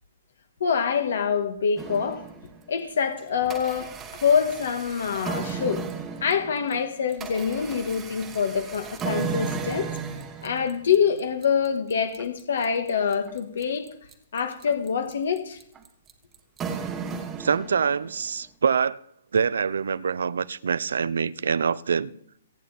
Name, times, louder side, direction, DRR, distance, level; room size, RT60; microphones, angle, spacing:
voice 1, 0.6-2.2 2.7-5.8 6.2-9.9 10.4-13.9 14.3-15.6, left 6 dB, 60° left, 1.8 m, -25 dB
sound 1, 1.8-2.7 3.2-18.2, right 6 dB, 10° right, 1.3 m, -35 dB
voice 2, 17.4-19.0 19.3-22.1, right 6 dB, 80° right, 0.7 m, -25 dB
27.0 x 9.2 x 4.4 m
hypercardioid pair, 175°, 0 cm